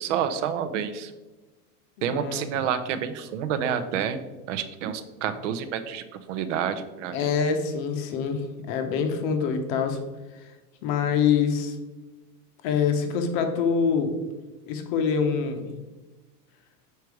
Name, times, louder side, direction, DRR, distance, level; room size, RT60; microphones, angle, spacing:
voice 1, 0.0-1.1 2.0-7.3, right 8 dB, 50° right, 11 dB, 0.7 m, -29 dB
voice 2, 2.1-2.4 7.1-10.0 10.8-11.8 12.6-14.1 14.7-15.7, left 6 dB, 35° left, 6 dB, 0.8 m, -25 dB
6.7 x 4.6 x 4.7 m, 1.1 s
supercardioid pair, 165°, 47 cm